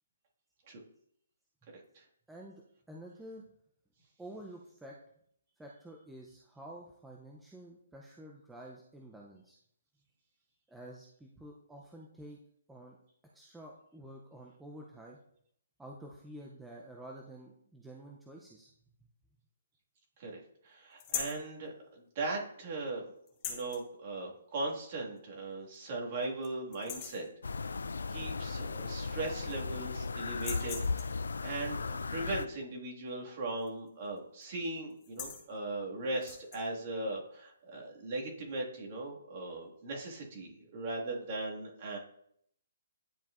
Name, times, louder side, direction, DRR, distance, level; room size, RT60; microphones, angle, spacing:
voice 1, 2.3-2.6 2.9-3.4 4.2-4.9 5.6-9.6 10.7-12.4 12.7-13.0 13.3-15.2 15.8-18.7, right 1 dB, 5° right, -2 dB, 0.5 m, -49 dB
voice 2, 20.2-23.1 23.5-27.3 27.7-27.8 28.1-42.0, right 2 dB, 35° right, -2 dB, 1.8 m, -39 dB
sound 1, 21.0-21.4 23.3-23.8 25.2-25.3 25.7-25.8 26.2-26.5 26.7-27.3 28.6-28.7 29.0-29.7 30.3-31.2 33.6-33.9 34.2-34.4 34.9-35.5 36.1-36.6, left 7 dB, 25° left, 1.1 m, -41 dB
sound 2, 27.4-32.5, left 4 dB, 90° left, 0.3 m, -36 dB
10.5 x 4.5 x 2.5 m, 0.69 s
hypercardioid pair, 160°, 0 cm